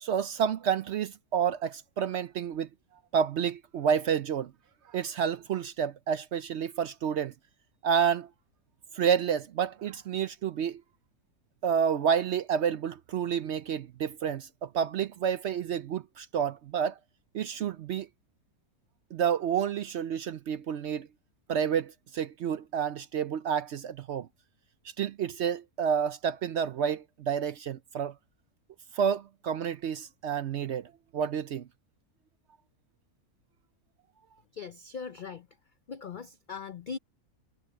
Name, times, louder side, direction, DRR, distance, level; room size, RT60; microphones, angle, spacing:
voice 1, 0.0-2.7 3.1-4.5 4.9-7.3 7.8-8.3 8.9-10.8 11.6-16.9 17.3-18.1 19.1-21.1 21.5-24.3 25.0-28.1 28.9-31.7, right 8 dB, 60° right, 0.7 m, -29 dB
voice 2, 34.5-35.5 35.9-37.0, left 5 dB, 70° left, 0.4 m, -40 dB
omnidirectional pair, 1.6 m